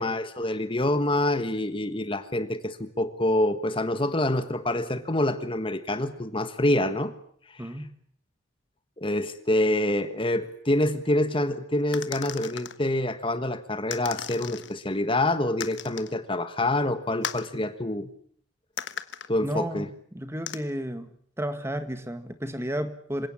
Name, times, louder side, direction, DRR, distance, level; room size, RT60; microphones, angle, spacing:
voice 1, 0.0-7.1 7.5-7.7 9.0-18.1 19.3-19.9, left 1 dB, 25° left, 11 dB, 1.4 m, -26 dB
voice 2, 7.6-7.9 19.4-19.8 20.1-21.1 21.4-23.3, equal, 15° right, 10 dB, 1.7 m, -32 dB
sound 1, 11.9-12.8 13.9-14.7 15.6-16.1 17.2-17.5 18.8-19.3 20.5-20.6, left 8 dB, 65° left, 1.3 m, -36 dB
27.0 x 17.5 x 8.7 m, 0.63 s
head